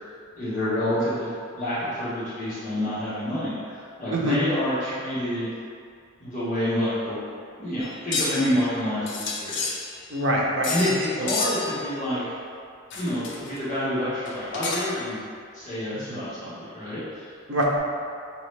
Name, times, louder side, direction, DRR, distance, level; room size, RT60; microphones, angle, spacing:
voice 1, 0.3-5.5 6.2-7.2 7.6-9.8 10.1-10.2 10.7-12.2 12.9-15.2 15.5-17.3, left 1 dB, 35° left, -12 dB, 1.2 m, -28 dB
voice 2, 4.1-4.4 10.1-10.7 11.2-11.3 16.1-16.2 17.5-17.8, equal, 60° right, -2 dB, 0.7 m, -24 dB
sound 1, 7.8-8.5 9.1-10.2 10.6-11.0 11.3-11.8 12.9-13.6 14.2-15.1, left 3 dB, 55° left, 0.6 m, -30 dB
5.2 x 2.9 x 3.2 m, 2.3 s
head